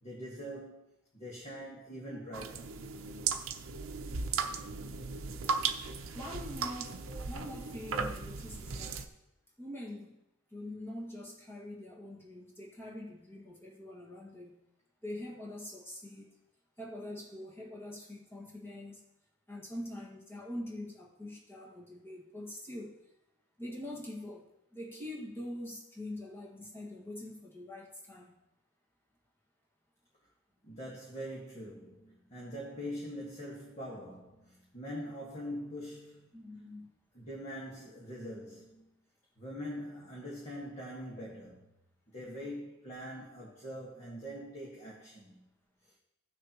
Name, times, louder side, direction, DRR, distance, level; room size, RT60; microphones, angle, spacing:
voice 1, 0.0-2.7 30.6-36.3 37.1-38.9 39.4-41.7 42.1-45.4 45.8-45.9, equal, 30° left, -5 dB, 1.7 m, -43 dB
sound 1, 2.3-9.1, right 5 dB, 65° right, 0.7 m, -36 dB
voice 2, 6.1-9.1 9.6-10.2 10.5-14.5 15.0-16.3 16.8-19.0 19.5-23.0 23.6-24.4 24.7-28.3 36.3-36.9, left 1 dB, 10° left, -3 dB, 1.8 m, -44 dB
16.0 x 6.5 x 3.0 m, 0.88 s
head